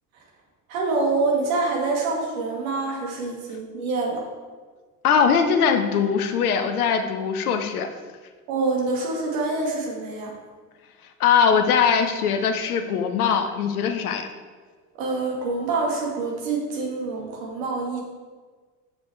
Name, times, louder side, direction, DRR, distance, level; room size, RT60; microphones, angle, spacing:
voice 1, 0.7-4.2 8.5-10.3 15.0-18.0, right 3 dB, 60° right, -2 dB, 2.2 m, -26 dB
voice 2, 5.0-7.9 11.2-14.3, left 6 dB, 65° left, 7 dB, 1.0 m, -21 dB
7.0 x 6.1 x 4.6 m, 1.4 s
figure-of-eight pair, 70°, 47 cm